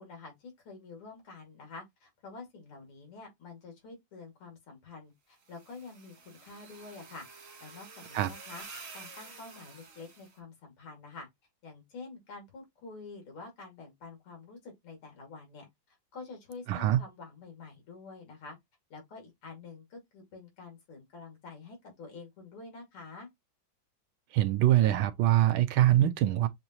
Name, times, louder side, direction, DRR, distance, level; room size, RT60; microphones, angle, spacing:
voice 1, 0.0-7.3 7.6-8.7 8.9-11.3 11.6-18.6 18.9-23.3, left 4 dB, 85° left, 3.2 m, -48 dB
sound 1, 5.4-10.3, right 4 dB, 40° right, 1.1 m, -49 dB
voice 2, 16.7-17.0 24.3-26.5, right 13 dB, 75° right, 1.4 m, -24 dB
6.8 x 2.6 x 2.9 m
omnidirectional pair, 2.4 m